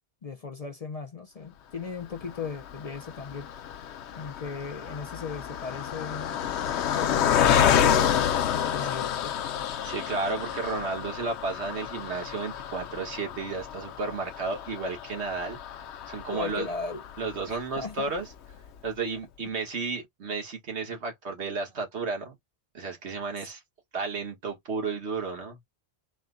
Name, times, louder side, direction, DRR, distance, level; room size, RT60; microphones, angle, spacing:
voice 1, 0.2-3.5 4.2-6.4 6.8-8.3 8.5-9.4 16.3-17.0 17.5-18.1 23.4-23.5, left 5 dB, 45° left, 0.6 m, -37 dB
Car passing by, 2.2-17.6 18.2-18.3 18.5-18.7, left 9 dB, 80° left, 0.9 m, -29 dB
voice 2, 9.8-15.6 16.1-16.7 17.2-18.3 18.8-22.4 22.7-23.6 23.9-25.6, right 4 dB, 80° right, 1.7 m, -33 dB
4.2 x 2.2 x 3.7 m
omnidirectional pair, 1.1 m